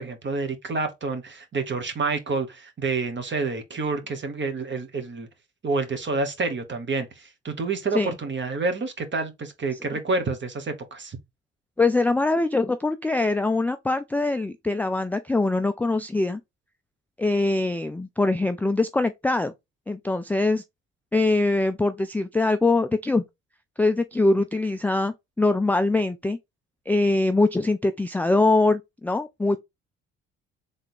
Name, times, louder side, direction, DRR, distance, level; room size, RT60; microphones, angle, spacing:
voice 1, 0.0-5.3 5.6-11.2, right 3 dB, 35° right, 1.4 m, -28 dB
voice 2, 11.8-16.4 17.2-19.5 19.9-20.6 21.1-23.2 23.8-26.4 26.9-29.6, left 2 dB, 5° left, 0.4 m, -23 dB
3.7 x 3.4 x 4.3 m
figure-of-eight pair, 45°, 34 cm